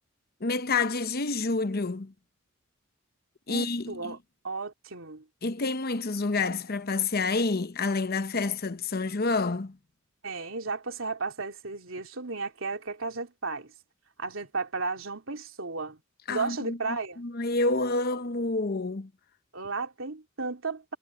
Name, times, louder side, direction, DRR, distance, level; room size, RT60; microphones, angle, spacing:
voice 1, 0.4-2.1 3.5-4.2 5.4-9.8 16.3-19.1, left 3 dB, 50° left, 0.9 m, -28 dB
voice 2, 3.5-4.2 4.4-5.2 10.2-13.7 14.2-16.0 16.3-17.2 19.5-21.0, right 4 dB, 75° right, 3.1 m, -34 dB
head